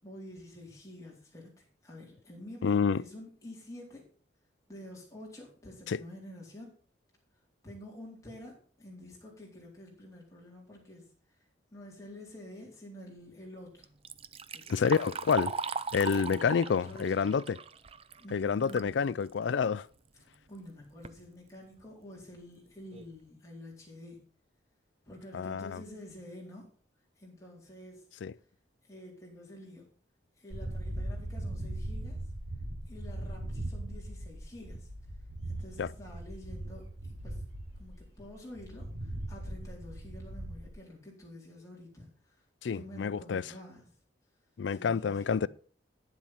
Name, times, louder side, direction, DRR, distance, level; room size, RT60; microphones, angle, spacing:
voice 1, 0.0-4.1 4.7-6.7 7.6-11.1 11.7-13.9 14.5-15.2 16.1-17.4 18.2-19.2 20.5-24.2 25.1-26.7 27.2-28.0 28.9-29.9 30.4-32.2 32.9-34.9 35.4-37.4 37.8-42.4 42.7-43.9 44.7-45.5, left 1 dB, 15° left, 3.9 m, -49 dB
voice 2, 2.6-3.0 5.9-6.0 14.7-15.5 15.9-17.6 18.3-19.9 25.3-25.8 28.2-28.3 35.8-35.9 42.6-43.5 44.6-45.5, left 6 dB, 70° left, 0.4 m, -28 dB
Liquid, 13.8-18.9 19.3-19.4 20.3-20.4 20.8-21.2 21.8-21.9 22.4-22.5 22.9-23.2, right 5 dB, 30° right, 0.5 m, -39 dB
sound 1, 30.5-40.7, right 1 dB, 75° right, 6.7 m, -39 dB
9.9 x 7.4 x 5.7 m
head